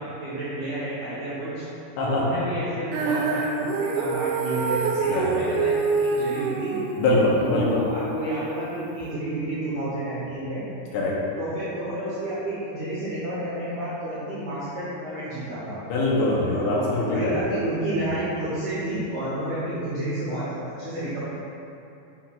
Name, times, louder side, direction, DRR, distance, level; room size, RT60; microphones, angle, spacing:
voice 1, 0.0-1.7 2.1-6.8 7.4-10.7 11.4-15.8 16.7-21.2, right 1 dB, 70° right, -11 dB, 1.7 m, -30 dB
Female singing, 2.9-9.1, right 4 dB, 90° right, 2.8 m, -27 dB
voice 2, 5.1-5.4 7.0-7.8 10.9-11.2 15.9-17.3, left 2 dB, 85° left, -4 dB, 3.2 m, -23 dB
7.6 x 5.7 x 2.5 m, 2.8 s
omnidirectional pair, 5.0 m